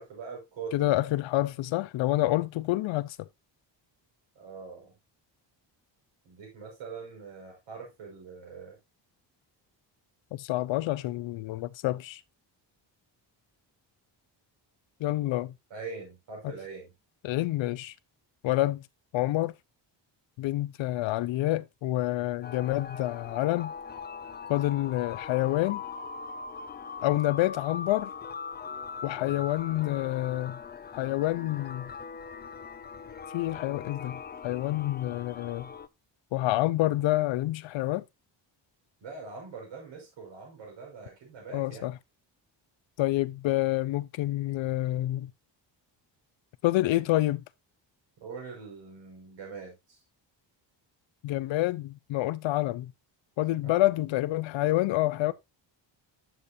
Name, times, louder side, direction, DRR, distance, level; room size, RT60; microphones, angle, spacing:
voice 1, 0.0-1.1 4.4-4.9 6.3-8.8 15.7-16.9 29.1-29.4 39.0-41.9 48.2-50.0 53.6-53.9 55.2-55.3, right 5 dB, 80° right, 5.4 m, -43 dB
voice 2, 0.7-3.3 10.3-12.2 15.0-15.5 16.4-16.5 17.2-17.9 18.4-18.8 19.1-19.5 20.4-23.7 24.5-25.8 27.0-28.1 29.0-30.6 30.9-31.9 33.3-35.7 36.3-38.0 41.5-42.0 43.0-45.3 46.6-47.4 51.2-52.9 53.4-55.3, left 16 dB, 80° left, 0.7 m, -28 dB
sound 1, 22.4-35.9, left 6 dB, 20° left, 0.5 m, -41 dB
10.0 x 7.7 x 2.6 m
cardioid pair, 135°, 45 cm